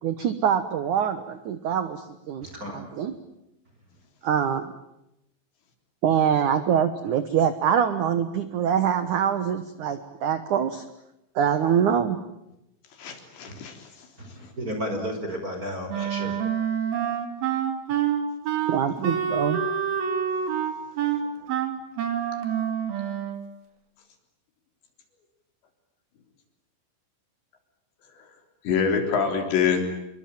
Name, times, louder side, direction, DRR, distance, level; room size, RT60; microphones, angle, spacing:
voice 1, 0.0-2.5 2.7-3.1 4.2-4.7 6.0-10.8 11.4-12.2 18.7-19.6, right 8 dB, 70° right, 11 dB, 1.8 m, -24 dB
voice 2, 2.4-2.8 13.5-13.6 14.2-16.4, equal, 20° right, 5 dB, 4.8 m, -33 dB
voice 3, 13.0-13.8 16.0-16.3 28.7-29.9, left 6 dB, 70° left, 5 dB, 5.8 m, -25 dB
Wind instrument woodwind instrument, 15.9-23.5, right 8 dB, 55° right, 4.2 m, -27 dB
27.5 x 23.5 x 9.0 m, 0.85 s
omnidirectional pair, 5.4 m